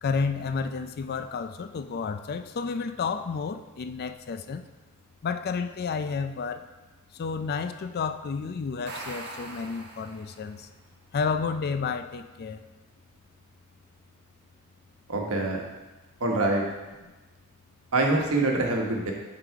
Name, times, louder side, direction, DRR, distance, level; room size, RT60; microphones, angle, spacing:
voice 1, 0.0-4.6 5.2-6.7 7.1-10.7 11.1-12.6, left 5 dB, 45° left, 9 dB, 0.4 m, -31 dB
sound 1, 8.7-10.6, right 2 dB, 50° right, 1.1 m, -41 dB
voice 2, 15.1-15.6 16.2-16.6 17.9-19.1, right 2 dB, 75° right, 0 dB, 1.2 m, -25 dB
8.1 x 3.9 x 4.6 m, 1.2 s
head